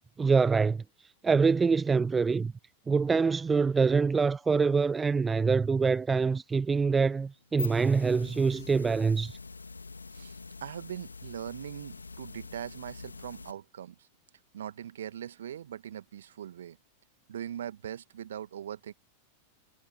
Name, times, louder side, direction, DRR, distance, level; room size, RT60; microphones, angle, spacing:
voice 1, 0.2-2.5 2.9-9.4, right 5 dB, 15° right, 0.4 m, -25 dB
sound 1, 7.4-13.5, left 4 dB, 80° left, 3.7 m, -44 dB
voice 2, 10.1-14.1 14.5-16.8 17.3-18.9, right 10 dB, 65° right, 1.7 m, -41 dB
figure-of-eight pair, 90°, 0 cm